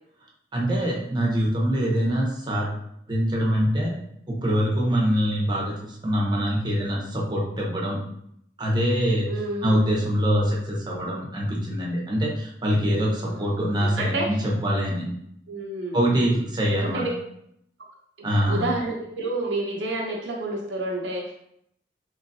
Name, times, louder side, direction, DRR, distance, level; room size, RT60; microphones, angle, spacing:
voice 1, 0.5-2.7 3.1-4.0 4.3-8.0 8.6-9.3 9.6-15.1 15.9-17.0 18.2-18.7, equal, 25° right, -2 dB, 0.9 m, -24 dB
voice 2, 9.3-9.8 13.2-14.3 15.5-16.3 16.8-17.1 18.5-21.3, right 2 dB, 85° right, -2 dB, 0.7 m, -30 dB
3.8 x 3.1 x 2.7 m, 0.73 s
head